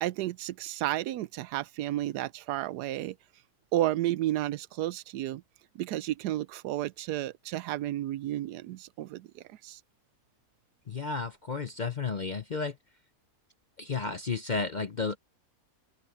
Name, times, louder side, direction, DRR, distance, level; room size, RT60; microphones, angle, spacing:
voice 1, 0.0-3.1 3.7-5.4 5.7-9.8, right 14 dB, 85° right, 1.1 m, -32 dB
voice 2, 10.9-12.7 13.8-15.2, left 4 dB, 45° left, 0.6 m, -32 dB
open air
omnidirectional pair, 1.7 m